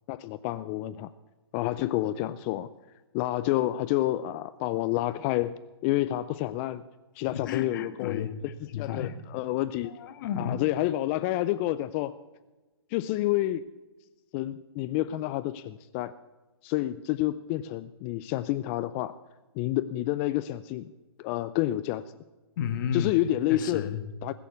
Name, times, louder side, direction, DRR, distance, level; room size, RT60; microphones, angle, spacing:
voice 1, 0.1-1.1 1.5-2.7 3.1-5.5 5.8-6.8 7.2-8.3 8.8-9.1 9.3-9.9 10.4-12.2 12.9-13.7 14.3-16.1 16.6-19.1 19.6-20.9 21.2-22.0 22.9-23.9 24.2-24.3, left 15 dB, 30° left, 13 dB, 0.4 m, -29 dB
voice 2, 7.2-9.1 9.8-10.6 22.6-23.1 23.5-24.1, left 8 dB, 50° left, 8 dB, 1.5 m, -33 dB
20.5 x 7.0 x 6.8 m, 1.2 s
hypercardioid pair, 145°, 14 cm